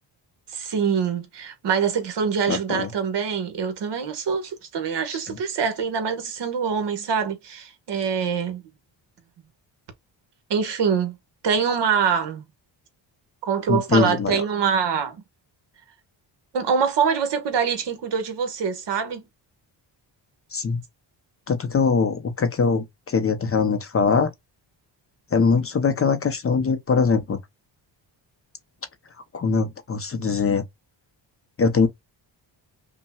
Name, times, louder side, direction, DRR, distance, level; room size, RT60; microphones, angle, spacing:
voice 1, 0.5-8.6 10.5-11.2 11.4-12.4 13.4-15.2 16.5-19.2, right 6 dB, 65° right, 1.3 m, -24 dB
voice 2, 2.5-2.9 13.7-14.4 20.5-20.8 21.5-24.3 25.3-27.4 29.3-30.6 31.6-31.9, left 5 dB, 30° left, 0.5 m, -22 dB
5.4 x 2.1 x 2.2 m
wide cardioid pair, 160°, 45 cm